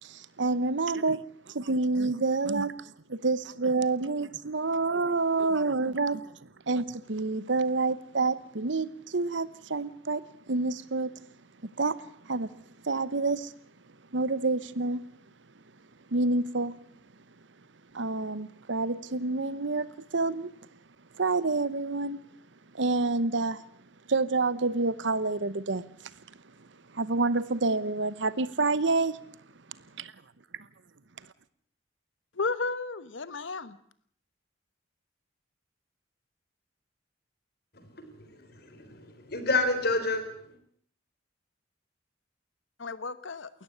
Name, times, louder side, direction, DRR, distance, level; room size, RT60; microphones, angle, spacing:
voice 1, 0.0-6.3 6.7-11.1 11.6-12.0 12.2-12.5 12.8-13.5 14.1-15.0 16.1-16.8 17.9-20.5 21.1-22.2 22.7-23.6 24.1-26.1 26.9-29.2 30.0-30.1, right 3 dB, 70° right, 1.0 m, -28 dB
voice 2, 32.3-33.8 42.8-43.5, left 4 dB, 80° left, 1.2 m, -33 dB
voice 3, 38.2-40.3, left 3 dB, 55° left, 3.8 m, -29 dB
19.0 x 14.0 x 9.7 m
head